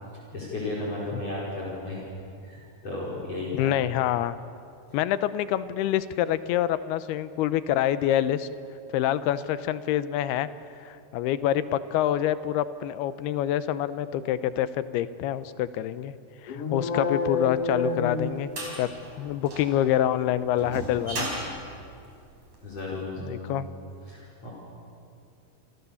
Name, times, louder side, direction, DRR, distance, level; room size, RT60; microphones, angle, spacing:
voice 1, 0.3-2.0 2.4-3.8 22.6-23.6 24.1-24.5, left 2 dB, 40° left, -4 dB, 5.7 m, -34 dB
voice 2, 3.5-4.4 4.9-8.5 8.9-10.5 10.8-16.1 16.4-18.5 18.8-18.9 19.2-21.3 23.3-23.7, left 11 dB, 80° left, 14 dB, 2.8 m, -26 dB
sound 1, 16.5-19.0, left 4 dB, 55° left, 1.7 m, -29 dB
sound 2, 17.5-22.8, right 1 dB, 45° right, 6.2 m, -37 dB
28.5 x 28.0 x 7.1 m, 2.4 s
omnidirectional pair, 4.6 m